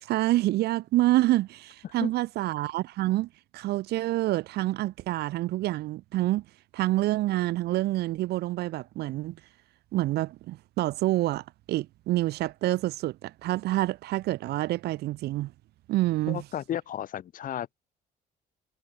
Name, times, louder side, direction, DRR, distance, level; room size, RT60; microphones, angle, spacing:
voice 1, 0.0-6.4 6.7-9.4 9.9-15.5 15.9-16.4, right 16 dB, 75° right, 0.8 m, -27 dB
voice 2, 16.3-17.7, left 10 dB, 55° left, 2.0 m, -33 dB
cardioid pair, 110°, 17 cm